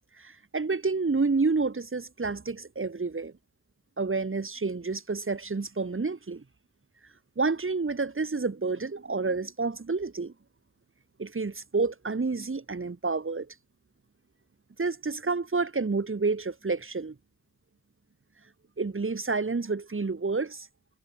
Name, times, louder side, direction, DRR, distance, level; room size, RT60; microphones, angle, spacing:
voice 1, 0.2-3.3 4.0-6.4 7.4-10.3 11.2-13.5 14.8-17.2 18.8-20.7, right 4 dB, 35° right, 2.3 m, -29 dB
cardioid pair, 65°, 37 cm